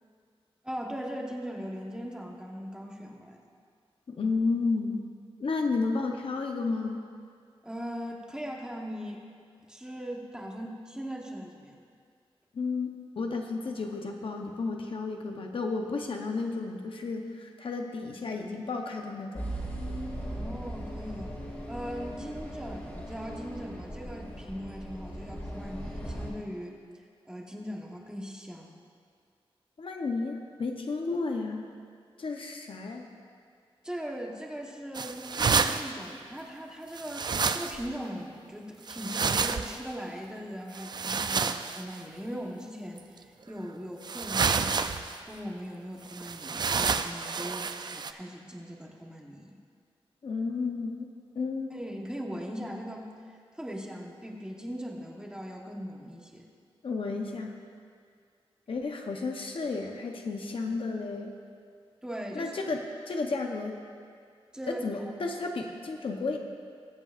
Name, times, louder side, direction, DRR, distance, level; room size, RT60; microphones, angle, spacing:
voice 1, 0.6-3.4 7.6-9.2 9.6-11.8 20.2-21.3 21.7-26.8 27.2-28.7 33.8-44.9 45.3-49.6 51.7-53.1 53.5-56.5 62.0-62.5 64.5-65.1, equal, 10° right, -1 dB, 1.1 m, -39 dB
voice 2, 4.1-5.0 5.4-7.1 12.5-19.5 29.8-31.7 32.2-33.1 50.2-51.8 56.8-57.6 58.7-61.4 62.3-63.8 64.7-66.4, left 3 dB, 60° left, 2 dB, 0.9 m, -32 dB
sound 1, 19.3-26.3, right 1 dB, 20° left, 2.2 m, -38 dB
sound 2, 34.9-35.9 37.0-37.9 38.9-39.8 40.7-41.8 43.0-43.1 44.0-45.2 46.1-48.1, right 5 dB, 45° right, 0.4 m, -29 dB
22.0 x 8.2 x 2.5 m, 2.2 s
wide cardioid pair, 145°, 10 cm